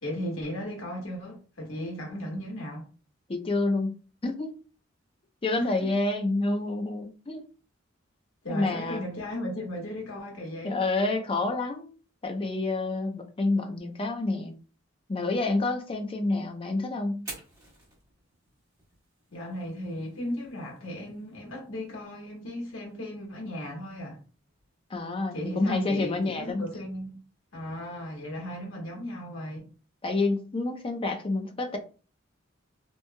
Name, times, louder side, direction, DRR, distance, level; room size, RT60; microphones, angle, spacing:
voice 1, 0.0-2.8 5.6-5.7 8.4-10.8 19.3-24.2 25.3-27.2 27.5-29.6, equal, 80° left, 1.2 m, -36 dB
voice 2, 3.3-4.0 4.2-4.6 5.4-7.4 8.5-9.0 10.6-11.9 12.2-14.5 15.1-17.3 24.9-26.7 30.0-31.8, left 2 dB, 30° left, 0.4 m, -28 dB
Fire, 17.1-25.1, right 2 dB, 20° right, 1.5 m, -51 dB
2.9 x 2.7 x 2.2 m
head